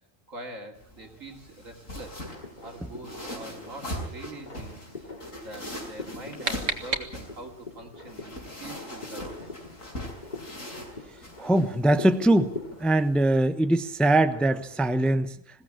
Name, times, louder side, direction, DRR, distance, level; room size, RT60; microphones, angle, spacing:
voice 1, 0.3-2.2 2.6-9.6, right 2 dB, 85° right, 3 dB, 3.1 m, -44 dB
sound 1, 0.7-13.4, left 1 dB, 90° left, 6.2 m, -41 dB
sound 2, 2.3-15.0, left 3 dB, 35° left, 2.4 m, -44 dB
sound 3, 5.9-7.6, right 4 dB, 70° right, 2.1 m, -33 dB
voice 2, 11.4-12.5 12.8-15.4, right 1 dB, ahead, 10 dB, 0.7 m, -22 dB
21.0 x 16.0 x 8.8 m, 0.70 s
omnidirectional pair, 1.3 m